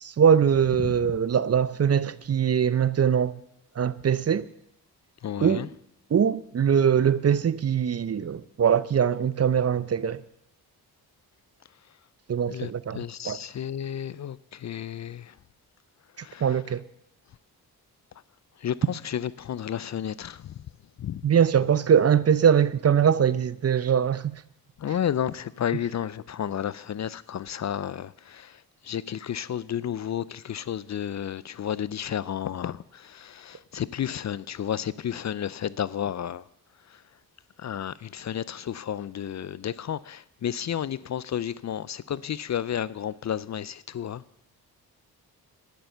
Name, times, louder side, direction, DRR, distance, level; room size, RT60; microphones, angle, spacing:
voice 1, 0.0-3.4 3.8-4.4 5.4-5.6 6.1-10.2 12.3-13.0 13.3-13.4 16.4-16.8 21.2-24.4, right 8 dB, 40° right, 0.6 m, -22 dB
voice 2, 5.2-5.7 11.9-12.0 12.5-15.4 16.1-16.8 18.6-20.6 21.0-21.2 24.8-36.5 36.8-37.0 37.6-44.2, left 9 dB, 45° left, 0.5 m, -32 dB
11.5 x 10.5 x 6.8 m
cardioid pair, 65°, 39 cm